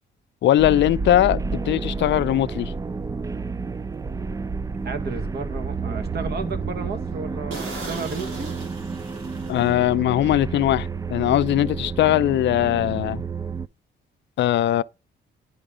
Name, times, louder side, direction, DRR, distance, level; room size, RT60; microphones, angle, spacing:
voice 1, 0.4-2.7 9.5-13.2 14.4-14.8, left 13 dB, 65° left, 0.5 m, -20 dB
sound 1, 0.6-13.7, right 4 dB, 15° right, 0.4 m, -30 dB
sound 2, 2.2-2.4 2.9-3.1 3.6-3.7 4.1-4.2 4.7-5.3 5.7-5.8 6.2-6.3 6.6-6.7 7.1-7.2 7.5-10.0 10.3-10.5, right 3 dB, 85° right, 3.5 m, -38 dB
voice 2, 4.8-8.5, right 4 dB, 55° right, 1.7 m, -33 dB
11.0 x 5.2 x 5.0 m
cardioid pair, 90°, 20 cm